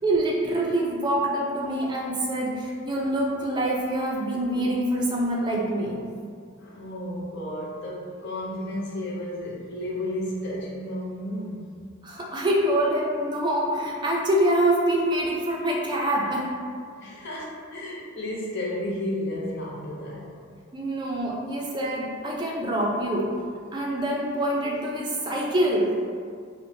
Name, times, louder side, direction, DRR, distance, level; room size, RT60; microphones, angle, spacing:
voice 1, 0.0-6.0 12.0-16.5 20.7-23.3 23.7-25.9, right 1 dB, 20° right, -3 dB, 0.3 m, -25 dB
voice 2, 6.6-11.7 16.9-20.4, left 1 dB, 60° left, -4 dB, 0.6 m, -32 dB
2.9 x 2.1 x 2.6 m, 2.1 s
head